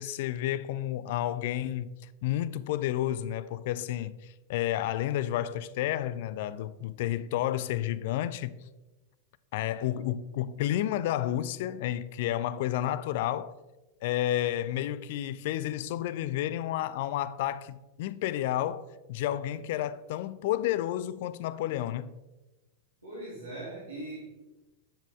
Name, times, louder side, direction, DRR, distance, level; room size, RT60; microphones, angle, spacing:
voice 1, 0.0-1.9 2.2-8.6 9.5-13.5 14.0-22.2, left 12 dB, 50° left, 0.3 m, -31 dB
voice 2, 23.0-24.3, right 2 dB, 80° right, 2.6 m, -40 dB
10.0 x 5.0 x 3.5 m
figure-of-eight pair, 90°, 0 cm